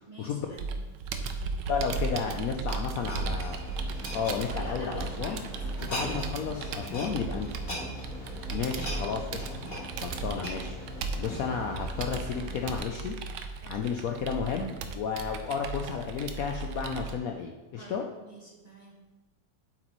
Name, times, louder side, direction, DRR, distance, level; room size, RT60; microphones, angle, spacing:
voice 1, 0.1-0.8 4.4-6.1 13.6-13.9 17.8-18.9, right 1 dB, 25° right, -2 dB, 1.2 m, -48 dB
Computer keyboard, 0.6-17.1, right 4 dB, 80° right, 1.3 m, -36 dB
voice 2, 1.7-3.6 4.1-5.4 5.8-7.5 8.5-9.4 10.0-10.8 11.2-13.2 13.7-18.0, left 6 dB, 65° left, 3 dB, 0.9 m, -32 dB
sound 1, 2.0-5.2 5.6-6.3 6.6-7.1 7.4-11.7 12.3-12.4, equal, 30° left, 2.8 m, -40 dB
sound 2, 3.2-12.8, left 1 dB, ahead, 2.7 m, -43 dB
8.7 x 8.0 x 3.1 m, 1.2 s
omnidirectional pair, 1.9 m